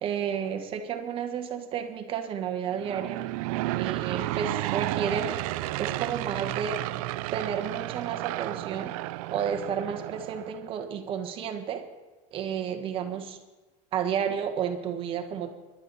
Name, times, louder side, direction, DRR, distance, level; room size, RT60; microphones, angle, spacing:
voice 1, 0.0-3.2 3.7-5.4 5.8-6.8 7.3-9.0 9.3-11.8 12.3-13.4 13.9-15.5, right 8 dB, 30° right, 6 dB, 1.4 m, -31 dB
Aircraft / Engine, 2.7-10.7, right 17 dB, 85° right, 0.6 m, -32 dB
24.5 x 12.0 x 4.2 m, 1.2 s
cardioid pair, 180°, 18 cm